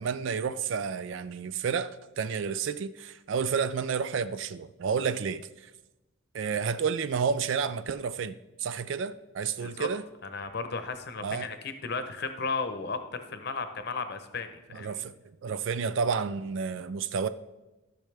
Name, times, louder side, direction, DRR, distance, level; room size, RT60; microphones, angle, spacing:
voice 1, 0.0-5.7 6.3-10.0 11.2-11.5 14.7-15.1 15.4-17.3, right 6 dB, 65° right, 0.4 m, -30 dB
voice 2, 10.2-15.0, left 4 dB, 50° left, 0.8 m, -35 dB
14.0 x 6.5 x 3.3 m
head